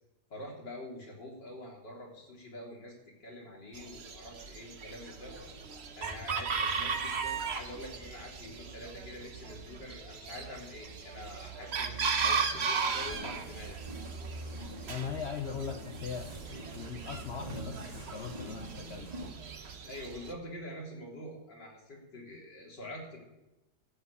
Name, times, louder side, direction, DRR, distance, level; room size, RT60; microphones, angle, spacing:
voice 1, 0.3-5.4 6.0-13.8 19.8-23.2, left 1 dB, 85° left, -3 dB, 4.3 m, -46 dB
Chicken rooster, 3.7-20.3, right 5 dB, 45° right, 1.1 m, -37 dB
sound 1, 5.3-12.4 13.6-13.7, equal, 15° left, 2.3 m, -53 dB
sound 2, 12.9-19.3, right 1 dB, 20° right, 1.8 m, -46 dB
voice 2, 14.9-19.2, left 6 dB, 50° left, 5 dB, 0.9 m, -40 dB
13.5 x 8.1 x 8.4 m, 0.96 s
omnidirectional pair, 1.9 m